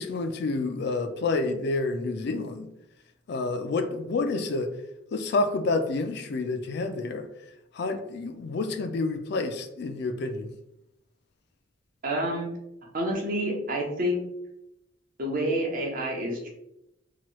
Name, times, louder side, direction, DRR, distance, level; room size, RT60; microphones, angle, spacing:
voice 1, 0.0-2.7 3.3-4.7 5.1-7.3 7.7-10.5, left 3 dB, 55° left, 8 dB, 0.3 m, -29 dB
voice 2, 12.0-12.5 12.9-14.3 15.2-16.5, equal, 45° right, 0 dB, 0.7 m, -28 dB
2.9 x 2.3 x 2.9 m, 0.83 s
head